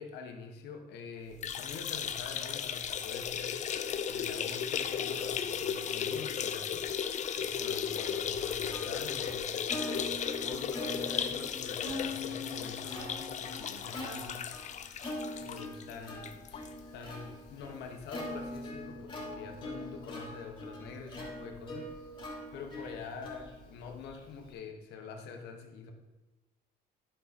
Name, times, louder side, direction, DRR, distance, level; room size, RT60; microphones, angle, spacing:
voice 1, 0.0-3.7 4.1-10.1 10.4-14.5 15.4-16.7 16.9-21.9 22.5-25.9, left 5 dB, 85° left, 4 dB, 1.2 m, -45 dB
sound 1, 1.3-16.7 17.1-17.2 17.5-17.6 18.6-18.7, left 8 dB, 45° left, 0.6 m, -35 dB
Plucked string instrument, 7.8-24.5, left 1 dB, 30° left, 3.4 m, -43 dB
11.5 x 5.6 x 4.2 m, 1.2 s
cardioid pair, 110°, 17 cm